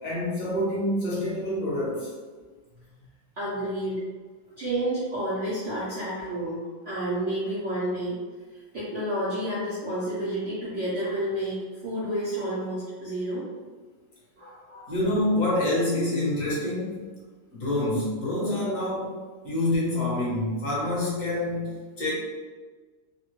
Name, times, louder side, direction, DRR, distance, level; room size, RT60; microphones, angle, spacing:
voice 1, 0.0-2.1 14.9-17.0 17.5-19.1 19.4-22.1, left 1 dB, 50° left, -6 dB, 1.1 m, -27 dB
voice 2, 3.4-4.0 4.6-8.2 8.7-13.4 14.4-14.9, right 1 dB, 70° right, -10 dB, 0.7 m, -30 dB
3.2 x 2.1 x 3.0 m, 1.4 s
omnidirectional pair, 2.2 m